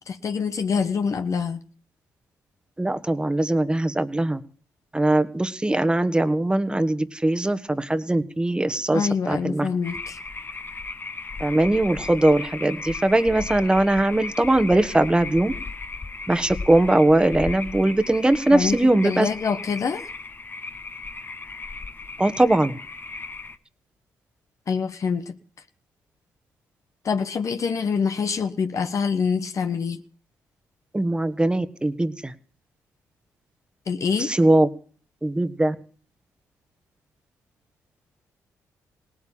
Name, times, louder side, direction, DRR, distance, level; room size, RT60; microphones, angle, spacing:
voice 1, 0.1-1.6 8.9-10.2 18.5-18.8 19.0-20.1 24.7-25.3 27.0-30.0 33.9-34.3, left 5 dB, 50° left, 8 dB, 1.2 m, -25 dB
voice 2, 2.8-4.4 4.9-9.7 11.4-15.5 16.3-19.3 22.2-22.8 30.9-32.3 34.2-34.7 35.2-35.7, right 1 dB, 15° right, 11 dB, 1.5 m, -21 dB
sound 1, 9.8-23.6, left 3 dB, 30° left, 1.2 m, -36 dB
18.0 x 8.6 x 8.8 m, 0.42 s
supercardioid pair, 65°, 7 cm